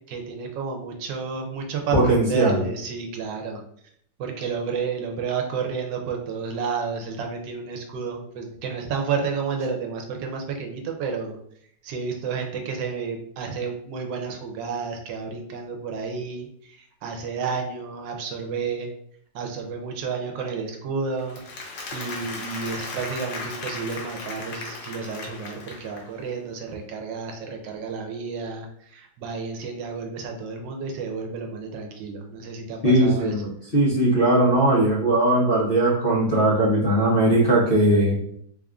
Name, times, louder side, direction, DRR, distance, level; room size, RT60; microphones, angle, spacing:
voice 1, 0.1-3.6 4.2-11.4 11.8-18.9 19.3-21.4 21.9-33.3, right 5 dB, 80° right, 2 dB, 1.3 m, -31 dB
voice 2, 1.9-2.6 32.8-38.2, right 1 dB, 40° left, -7 dB, 0.9 m, -19 dB
Applause, 21.2-26.2, left 3 dB, 70° left, 1.4 m, -36 dB
3.5 x 2.5 x 3.5 m, 0.67 s
omnidirectional pair, 2.0 m